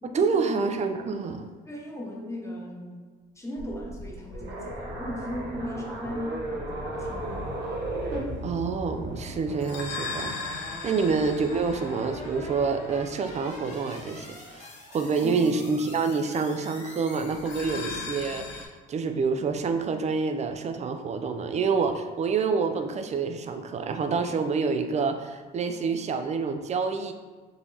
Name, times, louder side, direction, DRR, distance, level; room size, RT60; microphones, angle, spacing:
voice 1, 0.1-1.5 8.4-27.1, right 5 dB, 35° right, 7 dB, 0.4 m, -27 dB
voice 2, 1.7-3.0 3.4-7.6 15.2-15.5, left 1 dB, 15° left, -2 dB, 0.9 m, -37 dB
sound 1, 3.6-17.9, left 1 dB, 35° left, 1.2 m, -43 dB
sound 2, 4.3-8.2, right 2 dB, 60° right, 0.9 m, -35 dB
sound 3, 7.0-13.6 17.3-18.7, left 3 dB, 65° left, 0.6 m, -38 dB
3.9 x 2.9 x 2.6 m, 1.4 s
supercardioid pair, 75°, 21 cm